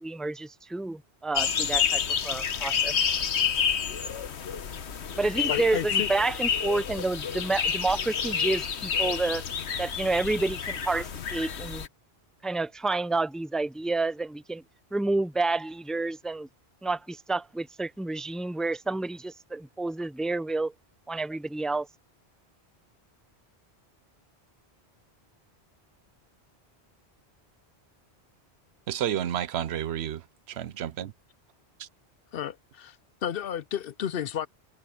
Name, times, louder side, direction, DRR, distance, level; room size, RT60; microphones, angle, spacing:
voice 1, 0.0-2.9 5.2-9.4 9.8-11.8 12.4-14.6 14.9-16.5 16.8-20.7 21.1-21.9, right 3 dB, ahead, 0.4 m, -29 dB
sound 1, 1.3-11.9, left 7 dB, 90° left, 1.3 m, -29 dB
voice 2, 5.5-6.1 32.3-33.0 33.2-34.5, left 9 dB, 65° left, 0.7 m, -32 dB
voice 3, 28.9-30.2 30.5-31.1 31.8-31.9, right 10 dB, 75° right, 0.9 m, -30 dB
omnidirectional pair, 1.1 m